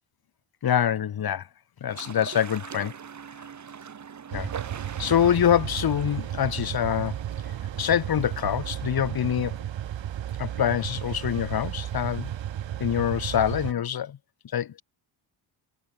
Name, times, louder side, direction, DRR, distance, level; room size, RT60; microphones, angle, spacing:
voice 1, 0.6-1.5 1.8-2.9 4.3-4.5 5.0-7.2 7.8-9.5 10.4-12.3 12.8-14.2 14.5-14.8, left 9 dB, 45° left, 1.8 m, -25 dB
sound 1, 1.9-9.6, right 7 dB, 35° right, 1.8 m, -43 dB
sound 2, 4.3-13.7, right 11 dB, 60° right, 3.3 m, -33 dB
cardioid pair, 130°, 49 cm